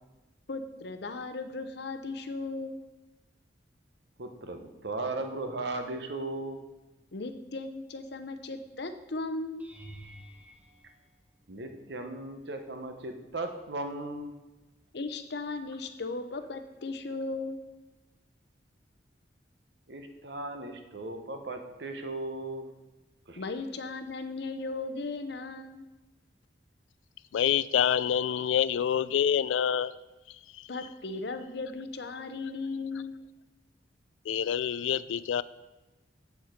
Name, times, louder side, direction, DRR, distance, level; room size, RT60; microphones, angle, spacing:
voice 1, 0.5-2.8 7.1-9.7 14.9-17.6 23.4-25.8 30.7-33.1, left 3 dB, 60° left, 9 dB, 0.7 m, -36 dB
voice 2, 4.2-6.6 11.5-14.3 19.9-22.7 23.3-23.4, right 2 dB, 60° right, 6 dB, 1.0 m, -37 dB
sound 1, 9.6-11.9 12.6-13.0 13.4-13.5 17.9-18.0, right 1 dB, 10° right, 1.0 m, -51 dB
voice 3, 27.3-29.9 34.3-35.4, left 9 dB, 85° left, 17 dB, 0.3 m, -26 dB
8.1 x 7.0 x 5.0 m, 1.1 s
head